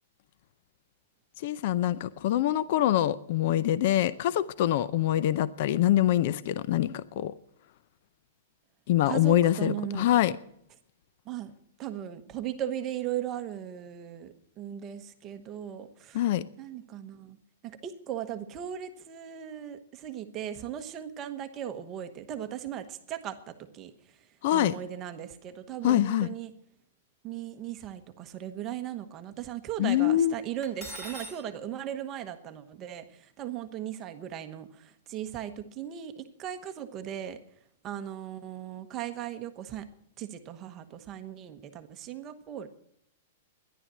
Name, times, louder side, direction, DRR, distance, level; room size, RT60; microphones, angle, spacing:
voice 1, 1.4-7.3 8.9-10.4 16.1-16.4 24.4-24.8 25.8-26.3 29.8-30.3, left 12 dB, 40° left, 17 dB, 0.5 m, -25 dB
voice 2, 9.1-10.1 11.3-11.5 11.8-16.2 16.6-17.4 17.6-23.9 24.5-26.5 27.2-33.0 33.4-37.4 37.8-39.8 40.2-42.7, right 10 dB, 20° right, 8 dB, 1.0 m, -37 dB
Cutlery silverware, 30.6-31.4, equal, 10° left, 2.3 m, -41 dB
13.5 x 11.0 x 7.5 m, 0.71 s
supercardioid pair, 175°, 0 cm